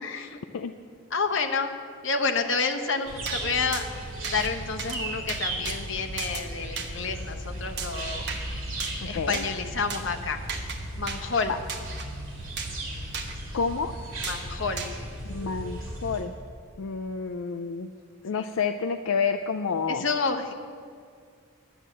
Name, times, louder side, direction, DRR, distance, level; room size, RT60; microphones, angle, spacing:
voice 1, 0.0-0.4 1.1-1.7 2.0-3.9 4.3-8.2 9.1-10.4 11.0-11.6 14.2-14.9 18.3-18.5 19.9-20.5, left 4 dB, 65° left, 6 dB, 0.9 m, -29 dB
sound 1, 3.1-16.2, right 1 dB, 70° right, 2.6 m, -36 dB
sound 2, 3.3-3.4 3.7-3.9 4.2-4.5 4.8-5.0 5.3-5.8 6.2-6.5 6.8-6.9 7.8-8.4 8.8-9.0 9.3-9.5 9.9-10.0 10.5-10.8 11.1-11.2 11.7-12.1 12.6-12.8 13.1-13.4 14.2-14.4 14.8-14.9, right 5 dB, 55° right, 1.1 m, -35 dB
voice 2, 9.1-9.4 13.5-13.9 15.2-16.3 16.8-17.9 18.2-20.0, left 5 dB, 85° left, 7 dB, 0.4 m, -29 dB
11.0 x 8.0 x 7.3 m, 2.1 s
head